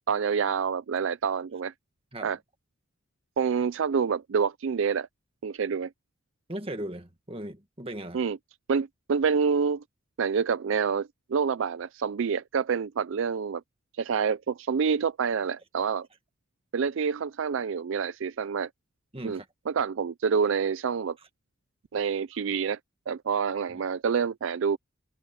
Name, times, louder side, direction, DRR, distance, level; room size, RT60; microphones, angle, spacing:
voice 1, 0.1-1.7 2.2-2.4 3.4-5.1 5.4-5.9 8.1-8.4 8.7-9.8 10.2-13.6 14.0-16.1 16.7-18.7 19.2-19.4 19.7-21.2 21.9-22.8 23.1-24.8, right 6 dB, 65° right, 0.4 m, -27 dB
voice 2, 6.5-8.2 19.1-19.5 23.7-23.8, right 1 dB, 25° right, 1.8 m, -38 dB
head